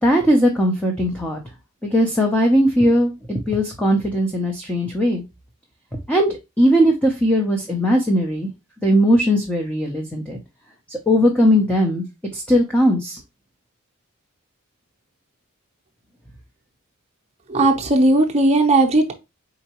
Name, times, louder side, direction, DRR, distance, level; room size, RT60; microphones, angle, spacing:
voice 1, 0.0-1.4 1.8-5.2 6.1-8.5 8.8-10.4 10.9-12.0 12.3-13.2, equal, 5° left, 0.6 m, -18 dB
voice 2, 17.5-19.1, right 2 dB, 30° right, 0.7 m, -16 dB
4.5 x 3.9 x 2.9 m
head